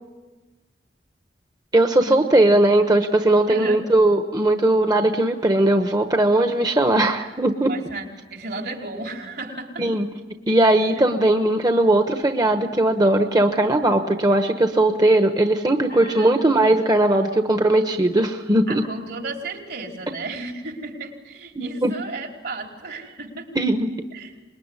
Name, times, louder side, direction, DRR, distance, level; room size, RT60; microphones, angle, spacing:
voice 1, 1.7-7.7 9.8-10.1 10.5-18.8 21.5-21.9 23.5-23.9, right 1 dB, 25° right, 6 dB, 1.2 m, -19 dB
voice 2, 3.5-3.8 7.7-9.8 15.9-16.5 18.7-23.5 24.1-24.3, right 2 dB, 65° right, 1 dB, 4.9 m, -34 dB
26.0 x 22.0 x 9.9 m, 1.2 s
head